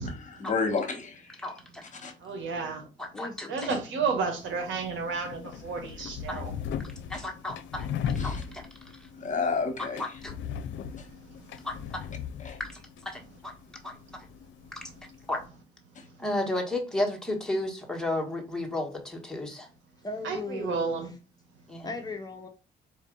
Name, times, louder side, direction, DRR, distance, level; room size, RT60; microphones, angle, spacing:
voice 1, 0.1-1.4 2.0-2.1 8.2-8.4 9.2-10.0 11.0-11.1 12.4-12.6 15.9-16.0, left 4 dB, 40° left, 1.2 m, -31 dB
voice 2, 1.4-1.8 3.0-3.7 6.3-6.4 7.1-8.7 8.9-9.1 10.0-10.3 11.6-11.8 12.6-12.7 13.0-13.5 13.8-14.0 14.7-14.9 15.3-15.4 16.2-19.7 21.7-21.9, left 1 dB, 5° left, 1.3 m, -33 dB
voice 3, 2.2-2.8 3.5-6.5 20.2-21.1, right 5 dB, 75° right, 1.2 m, -31 dB
voice 4, 3.1-3.7 20.0-21.0 21.8-22.5, left 3 dB, 20° left, 0.7 m, -38 dB
sound 1, 4.4-15.5, left 7 dB, 70° left, 0.5 m, -38 dB
4.5 x 2.6 x 3.7 m
cardioid pair, 90°, 20 cm